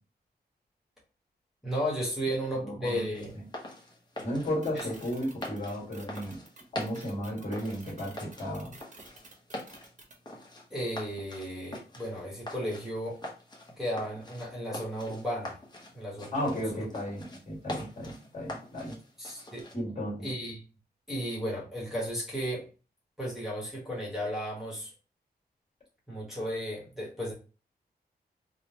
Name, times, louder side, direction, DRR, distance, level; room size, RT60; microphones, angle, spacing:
voice 1, 1.6-3.3 4.7-4.9 10.7-13.2 13.8-15.6 15.9-16.6 19.2-19.7 20.2-20.6 21.1-22.6 23.2-24.9 26.1-27.3, equal, ahead, -7 dB, 1.0 m, -34 dB
voice 2, 2.6-3.4 4.2-6.4 6.7-8.7 16.3-19.0 19.7-20.3, equal, 40° left, -4 dB, 1.6 m, -34 dB
sound 1, 3.1-19.7, left 1 dB, 25° left, 0.8 m, -44 dB
sound 2, 4.6-10.1, right 3 dB, 45° right, 0.9 m, -51 dB
3.6 x 2.0 x 2.7 m, 0.35 s
wide cardioid pair, 130°, 17 cm